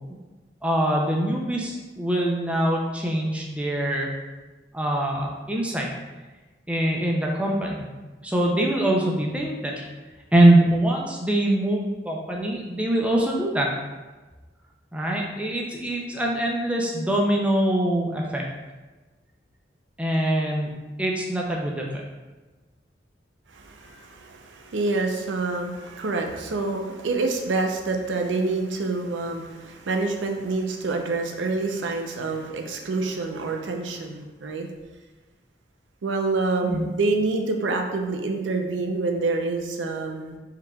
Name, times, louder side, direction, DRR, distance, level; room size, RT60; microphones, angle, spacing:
voice 1, 0.6-4.1 4.7-5.9 6.7-7.9 8.2-9.9 10.3-13.7 14.9-18.4 20.0-20.7 21.0-22.0 36.6-36.9, right 1 dB, 5° right, -1 dB, 0.4 m, -23 dB
voice 2, 23.5-34.7 36.0-40.4, right 3 dB, 85° right, 3 dB, 0.5 m, -27 dB
4.7 x 3.6 x 2.2 m, 1.2 s
head